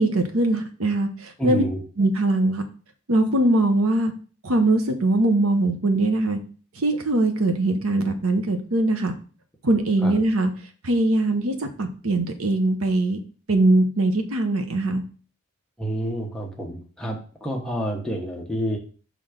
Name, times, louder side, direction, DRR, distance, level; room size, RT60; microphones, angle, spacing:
voice 1, 0.0-1.6 2.0-2.6 3.1-4.1 4.4-6.4 6.8-9.1 9.6-10.5 10.8-13.2 13.5-15.0, right 2 dB, 90° right, 6 dB, 0.9 m, -21 dB
voice 2, 1.4-1.8 10.0-10.1 15.8-18.8, equal, 5° left, -1 dB, 1.0 m, -28 dB
5.8 x 3.4 x 5.0 m, 0.40 s
head